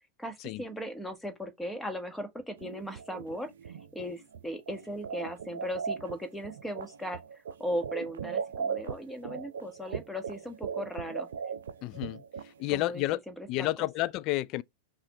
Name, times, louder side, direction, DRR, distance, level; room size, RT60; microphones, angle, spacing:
voice 1, 0.2-3.5 3.9-7.2 7.6-11.3 12.7-13.9, equal, 5° left, 1.2 m, -37 dB
sound 1, 2.6-13.1, right 6 dB, 65° right, 0.5 m, -38 dB
voice 2, 11.8-13.2 13.5-14.6, left 17 dB, 40° left, 0.3 m, -31 dB
5.6 x 2.4 x 3.0 m
figure-of-eight pair, 90°, 0 cm